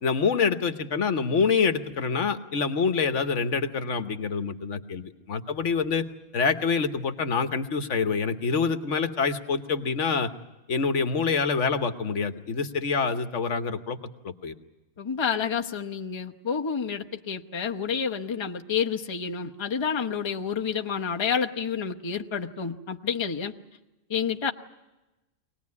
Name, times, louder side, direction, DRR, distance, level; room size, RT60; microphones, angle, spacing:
voice 1, 0.0-6.0 6.3-10.3 10.7-14.0 14.2-14.5, left 5 dB, 75° left, 9 dB, 1.4 m, -26 dB
voice 2, 15.0-23.5 24.1-24.5, left 6 dB, 25° left, 3 dB, 0.9 m, -29 dB
23.5 x 19.0 x 9.6 m, 1.1 s
omnidirectional pair, 1.3 m